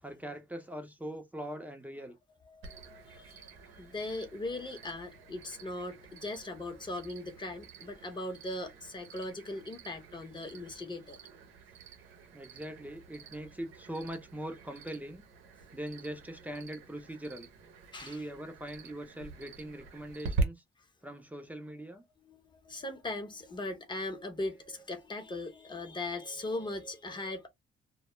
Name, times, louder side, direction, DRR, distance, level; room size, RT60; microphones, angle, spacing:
voice 1, 0.0-2.2 12.3-15.2 15.7-17.5 18.0-20.6 21.0-22.0, right 1 dB, 10° right, 0.7 m, -41 dB
voice 2, 2.5-11.4 17.9-18.3 22.3-27.5, left 2 dB, 25° left, 0.9 m, -39 dB
Cricket, 2.6-20.4, right 3 dB, 85° right, 0.7 m, -44 dB
2.2 x 2.0 x 3.0 m
cardioid pair, 90°, 20 cm